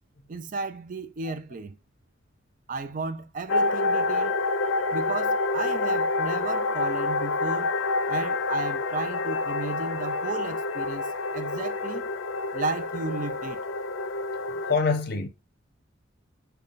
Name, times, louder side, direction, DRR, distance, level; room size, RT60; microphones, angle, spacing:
voice 1, 0.3-1.8 2.7-4.4 4.9-7.7 8.1-12.1 12.5-13.6, right 3 dB, 45° right, 0.4 m, -34 dB
sound 1, 3.5-14.7, left 3 dB, 90° left, 0.5 m, -27 dB
voice 2, 14.7-15.3, left 4 dB, 50° left, 0.7 m, -24 dB
5.2 x 2.3 x 2.4 m
head